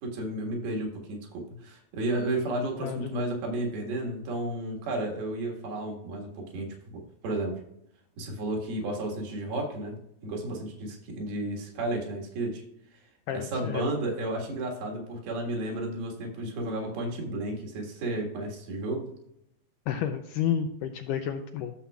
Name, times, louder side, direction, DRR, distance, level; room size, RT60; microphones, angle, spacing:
voice 1, 0.0-7.6 8.2-10.0 10.2-12.6 12.9-13.0 13.3-19.1, right 2 dB, 85° right, 0 dB, 3.6 m, -32 dB
voice 2, 2.8-3.3 13.3-13.8 19.9-21.7, left 9 dB, 85° left, 6 dB, 1.9 m, -31 dB
13.0 x 6.9 x 2.3 m, 0.79 s
omnidirectional pair, 4.3 m